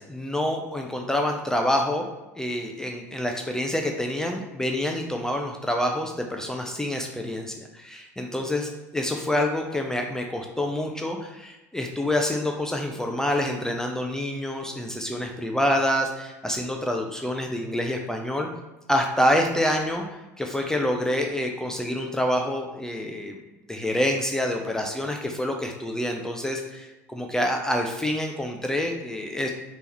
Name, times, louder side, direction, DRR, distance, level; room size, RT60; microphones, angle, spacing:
voice 1, 0.0-2.1 2.4-18.5 18.9-23.4 23.7-29.5, left 1 dB, 5° left, 2 dB, 0.4 m, -27 dB
3.3 x 2.9 x 3.3 m, 1.1 s
hypercardioid pair, 90°, 9 cm